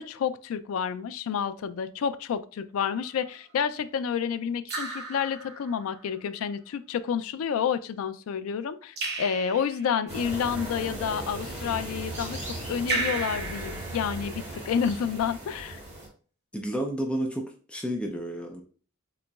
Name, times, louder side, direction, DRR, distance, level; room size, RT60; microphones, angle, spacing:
voice 1, 0.0-12.4 12.7-15.8, left 7 dB, 75° left, 12 dB, 0.3 m, -29 dB
Raindrop / Drip, 2.9-3.4 4.7-6.0 9.0-10.1 12.9-14.6, right 3 dB, 50° right, 1.0 m, -34 dB
sound 1, 10.1-16.1, right 1 dB, 30° right, 1.5 m, -37 dB
voice 2, 16.5-17.4 17.7-18.6, right 1 dB, 5° left, 2 dB, 0.4 m, -30 dB
4.0 x 2.9 x 2.3 m, 0.40 s
head